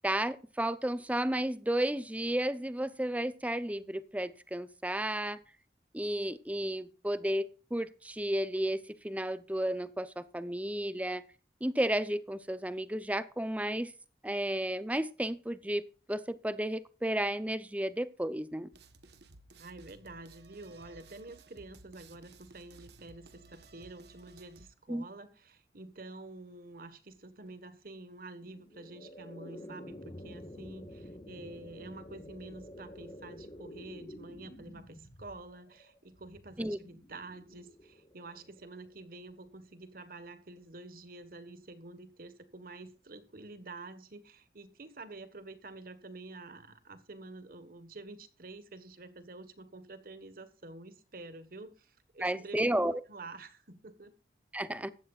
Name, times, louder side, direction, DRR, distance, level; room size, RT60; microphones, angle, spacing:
voice 1, 0.0-5.4 5.9-11.2 11.6-13.9 14.2-18.7 24.9-25.0 36.6-36.8 52.2-53.0 54.5-54.9, right 1 dB, 10° right, 0.7 m, -33 dB
sound 1, 18.7-24.7, right 3 dB, 70° right, 1.3 m, -56 dB
voice 2, 19.6-52.7 53.1-54.1, right 2 dB, 55° right, 1.5 m, -48 dB
sound 2, 28.4-39.5, left 1 dB, 30° left, 1.6 m, -50 dB
15.0 x 12.0 x 2.5 m
head